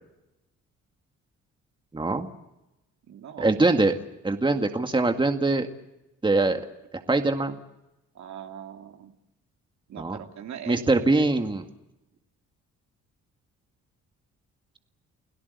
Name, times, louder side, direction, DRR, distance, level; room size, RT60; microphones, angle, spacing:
voice 1, 1.9-2.3 3.4-3.9 4.2-5.7 6.2-6.6 7.1-7.5 10.0-10.2 10.7-11.7, right 2 dB, 15° right, 6 dB, 2.0 m, -23 dB
voice 2, 3.0-3.5 8.1-9.1 9.9-11.2, right 9 dB, 65° right, 4 dB, 3.0 m, -41 dB
30.0 x 17.5 x 8.2 m, 0.95 s
cardioid pair, 90°, 30 cm